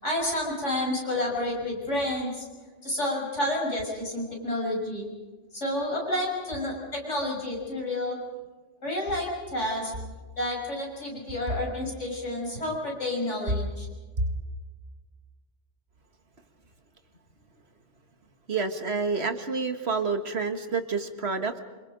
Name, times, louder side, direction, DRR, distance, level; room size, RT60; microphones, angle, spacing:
voice 1, 0.0-2.5 2.8-5.1 5.5-8.2 8.8-9.9 10.4-13.9, left 1 dB, 80° left, -1 dB, 6.6 m, -30 dB
voice 2, 18.5-21.6, right 4 dB, 60° right, 7 dB, 1.9 m, -28 dB
27.5 x 26.5 x 5.2 m, 1.4 s
omnidirectional pair, 1.2 m